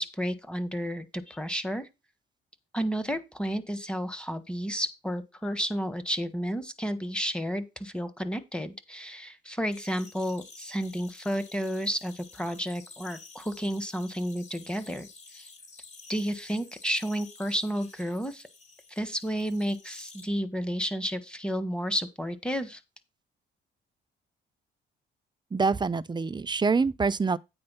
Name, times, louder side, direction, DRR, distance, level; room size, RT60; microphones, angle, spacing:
voice 1, 0.0-1.9 2.7-15.5 16.1-18.4 18.9-22.8, equal, 5° left, 1.3 m, -31 dB
sound 1, 9.7-20.3, left 4 dB, 35° left, 2.8 m, -51 dB
voice 2, 25.5-27.4, right 4 dB, 20° right, 0.5 m, -25 dB
8.8 x 4.4 x 5.5 m
cardioid pair, 90°, 20 cm